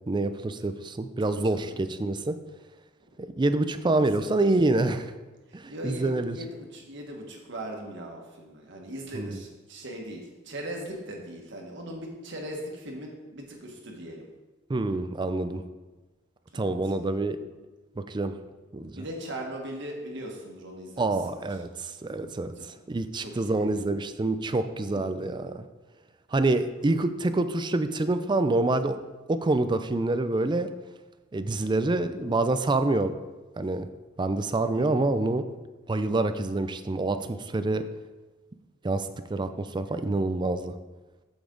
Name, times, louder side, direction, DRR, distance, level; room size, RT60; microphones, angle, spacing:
voice 1, 0.1-2.3 3.2-5.1 5.5-6.4 9.1-9.3 14.7-15.6 16.5-17.4 18.0-18.4 18.7-19.0 21.0-22.5 22.9-25.6 26.3-29.0 29.3-30.7 31.3-33.1 33.6-33.9 34.2-35.4 35.9-37.8 38.8-40.7, right 2 dB, 25° right, 10 dB, 0.4 m, -26 dB
voice 2, 1.2-1.9 3.7-4.0 5.5-14.3 16.5-16.7 19.0-21.4 22.5-22.8 23.2-23.8 24.9-25.0 34.7-35.0, right 1 dB, 60° right, 0 dB, 1.6 m, -39 dB
8.4 x 7.1 x 3.9 m, 1.2 s
head